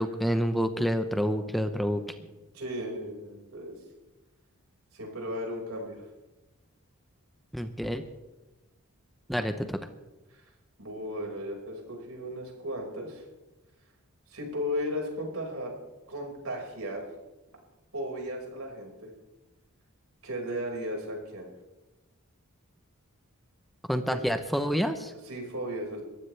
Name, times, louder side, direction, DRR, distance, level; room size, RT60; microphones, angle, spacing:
voice 1, 0.0-2.0 7.5-8.0 9.3-9.8 23.9-25.1, equal, ahead, 7 dB, 0.7 m, -28 dB
voice 2, 2.5-3.8 4.9-6.0 10.3-10.4 10.8-13.2 14.3-15.7 16.1-17.1 17.9-19.1 20.2-21.5 24.1-24.2 25.2-26.0, equal, 75° right, 0 dB, 5.2 m, -35 dB
22.5 x 15.0 x 3.3 m, 1.1 s
head